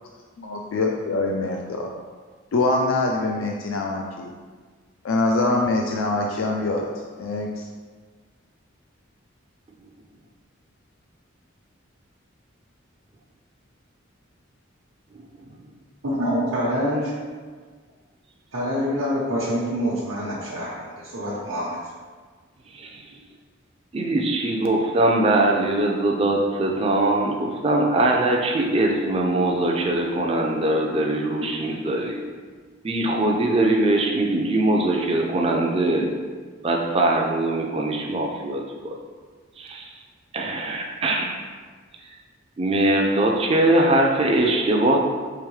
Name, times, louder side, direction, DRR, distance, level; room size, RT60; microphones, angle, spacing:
voice 1, 0.4-1.9 2.5-4.3 5.0-6.9 7.2-7.6, left 2 dB, 80° left, 1 dB, 0.4 m, -24 dB
voice 2, 15.1-15.7 22.7-23.1 23.9-32.3 32.8-36.2 36.6-39.0 39.6-40.0 40.3-41.4 42.6-45.0, right 1 dB, 30° right, 0 dB, 0.4 m, -22 dB
voice 3, 16.0-17.1 18.5-21.8, equal, 80° right, -8 dB, 0.8 m, -26 dB
4.9 x 3.0 x 3.2 m, 1.5 s
head